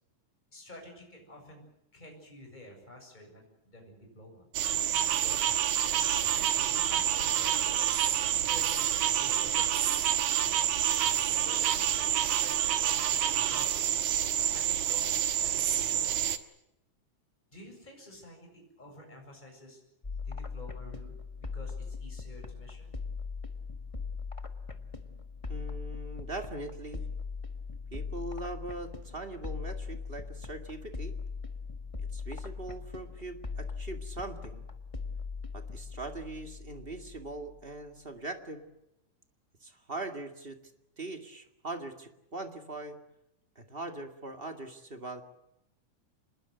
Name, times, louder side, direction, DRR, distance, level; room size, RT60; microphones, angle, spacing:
voice 1, 0.5-4.5 5.2-5.4 5.9-7.8 8.4-10.4 11.2-12.6 12.8-13.8 14.5-16.3 17.5-19.8 20.2-21.1 21.5-22.9, left 1 dB, 15° left, 1 dB, 7.5 m, -50 dB
sound 1, 4.5-16.4, right 10 dB, 70° right, 2.6 m, -28 dB
sound 2, 20.0-37.6, left 4 dB, 50° left, 0.3 m, -40 dB
voice 2, 25.5-27.1 27.9-31.1 32.1-34.7 35.5-38.7 39.6-40.6 41.0-43.0 43.6-45.2, right 2 dB, 20° right, 6 dB, 1.8 m, -41 dB
26.5 x 21.0 x 8.0 m, 0.86 s
omnidirectional pair, 3.6 m